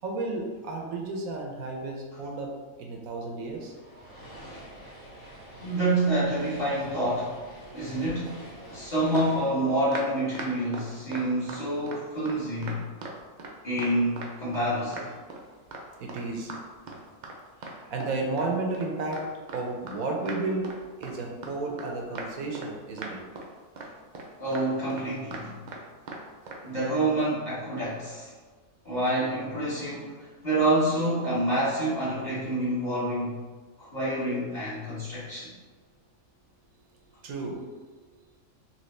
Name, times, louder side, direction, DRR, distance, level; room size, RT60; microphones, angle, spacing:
voice 1, 0.0-2.5 2.8-3.7 7.6-8.0 8.6-8.9 16.0-16.5 17.6-20.7 21.0-23.2 26.3-26.8 37.2-38.4, right 3 dB, 80° right, 1 dB, 1.1 m, -33 dB
sound 1, 3.5-11.0, right 1 dB, 90° left, 1.9 m, -48 dB
voice 2, 5.6-7.4 7.7-12.8 13.6-15.1 24.4-25.6 26.6-28.3 28.8-30.1 30.4-33.4 33.8-35.5, right 1 dB, 35° left, -11 dB, 1.5 m, -27 dB
sound 2, 7.8-8.4 9.1-12.0 12.3-13.5 13.8-14.7 14.9-15.4 15.7-15.8 16.1-16.2 16.5-16.6 16.9-17.8 18.0-20.0 20.3-20.8 21.0-21.1 21.4-21.9 22.2-22.7 23.0-23.5 23.8-23.9 24.1-25.8 26.1-26.2 26.5-26.6, right 3 dB, 60° right, 0.4 m, -39 dB
4.1 x 3.1 x 3.2 m, 1.4 s
omnidirectional pair, 1.5 m